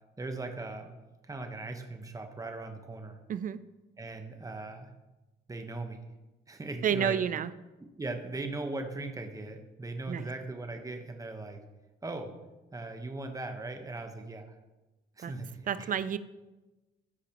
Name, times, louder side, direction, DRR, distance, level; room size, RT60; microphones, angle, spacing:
voice 1, 0.2-1.0 1.2-3.2 4.0-4.9 5.5-6.0 6.5-7.2 8.0-11.6 12.0-12.3 12.7-14.5 15.2-15.9, right 2 dB, 15° right, 5 dB, 1.0 m, -39 dB
voice 2, 3.3-3.6 6.8-7.5 10.1-10.3 15.2-15.3 15.7-16.2, right 8 dB, 45° right, 15 dB, 0.4 m, -30 dB
13.0 x 5.0 x 2.9 m, 1.1 s
cardioid pair, 90°, 20 cm